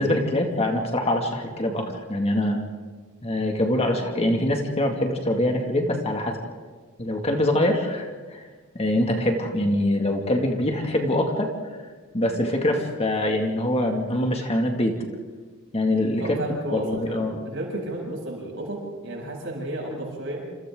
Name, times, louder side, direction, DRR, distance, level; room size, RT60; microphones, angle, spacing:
voice 1, 0.0-2.6 3.2-6.4 7.0-8.4 8.7-11.5 12.1-15.0 15.7-16.4 16.7-17.4, left 1 dB, 30° left, 2 dB, 2.3 m, -24 dB
voice 2, 16.2-20.4, right 1 dB, 60° right, -1 dB, 7.8 m, -32 dB
28.5 x 27.5 x 3.9 m, 1.4 s
head